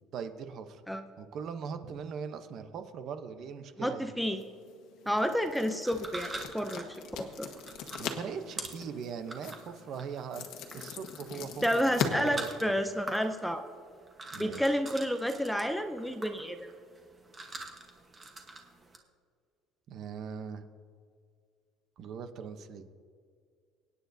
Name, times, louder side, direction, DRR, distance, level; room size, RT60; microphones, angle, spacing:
voice 1, 0.1-0.8 1.2-4.1 8.0-10.5 10.7-12.8 14.3-14.8 19.9-20.7 22.0-22.9, right 6 dB, 45° right, 9 dB, 0.7 m, -40 dB
voice 2, 3.8-4.4 5.1-6.9 7.2-7.5 11.6-13.6 14.4-16.6, equal, ahead, 7 dB, 0.4 m, -30 dB
sound 1, 4.2-13.3, left 7 dB, 60° left, 1.4 m, -41 dB
sound 2, 5.8-19.0, right 3 dB, 15° right, 1.1 m, -46 dB
25.0 x 9.3 x 2.7 m, 2.1 s
cardioid pair, 165°, 0 cm